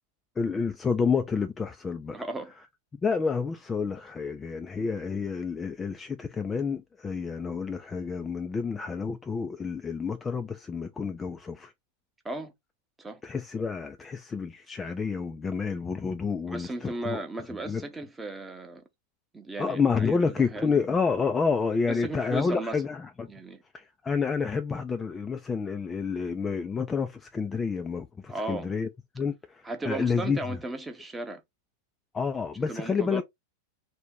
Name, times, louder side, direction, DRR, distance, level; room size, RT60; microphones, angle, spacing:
voice 1, 0.4-2.2 3.0-11.7 13.2-17.2 17.7-17.8 19.6-23.3 23.7-28.9 29.1-30.4 32.1-33.2, left 5 dB, 15° left, 0.3 m, -29 dB
voice 2, 2.1-2.5 12.2-12.5 13.0-13.2 16.5-18.8 19.3-20.7 21.9-22.8 23.3-23.6 28.3-28.7 29.6-31.4 32.7-33.2, right 2 dB, 10° right, 0.7 m, -36 dB
2.7 x 2.1 x 3.6 m
figure-of-eight pair, 90°, 0 cm